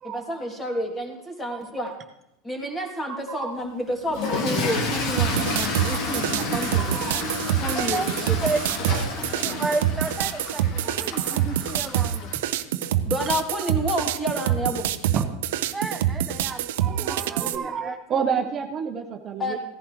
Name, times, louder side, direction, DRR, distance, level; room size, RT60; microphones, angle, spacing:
voice 1, 0.0-1.9 2.4-6.9 7.6-8.0 13.0-14.9 19.4-19.6, equal, 15° left, 1 dB, 2.8 m, -29 dB
voice 2, 1.5-1.9 3.1-3.5 6.8-7.2 9.5-9.6 10.8-10.9 15.1-15.2 16.5-19.6, right 7 dB, 35° right, 5 dB, 1.0 m, -30 dB
Toilet flush / Fill (with liquid), 4.1-12.4, left 3 dB, 55° left, 2.2 m, -30 dB
sound 1, 5.2-17.6, right 11 dB, 75° right, 0.6 m, -26 dB
voice 3, 7.7-8.7 9.2-12.3 15.7-18.0, right 3 dB, 15° right, 4 dB, 0.7 m, -32 dB
16.0 x 11.0 x 3.2 m, 0.84 s
hypercardioid pair, 105°, 0 cm